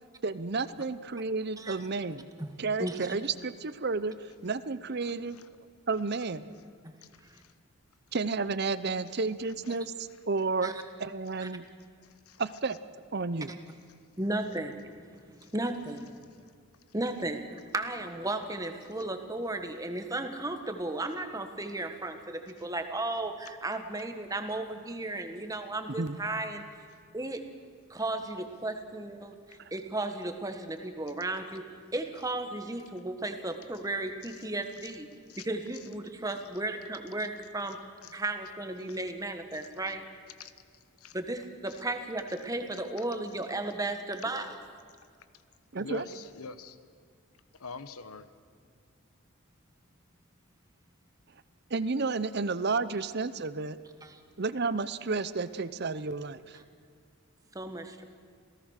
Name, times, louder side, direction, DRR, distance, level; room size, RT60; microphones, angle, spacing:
voice 1, 0.2-2.2 2.6-5.4 5.9-6.5 8.1-10.7 11.0-11.6 12.4-12.8 13.1-13.5 25.9-26.2 45.7-46.0 51.7-53.8 54.4-56.6, right 4 dB, 45° right, 14 dB, 0.7 m, -31 dB
voice 2, 7.0-7.5 9.7-9.8 12.0-12.4 15.4-15.5 29.5-29.6 34.2-34.4 34.8-34.9 35.3-35.5 37.2-37.3 38.0-38.2 38.9-39.0 39.5-39.9 40.4-41.2 41.7-41.8 42.7-42.8 45.8-46.8 47.6-48.3, left 5 dB, 80° left, 12 dB, 1.1 m, -46 dB
voice 3, 14.2-14.8 15.4-16.0 16.9-26.6 27.1-27.4 27.9-31.7 31.9-35.1 35.4-37.8 38.1-40.0 41.1-44.6 54.0-54.2 57.5-58.0, right 2 dB, 15° right, 6 dB, 1.5 m, -34 dB
28.0 x 17.5 x 6.5 m, 2.2 s
head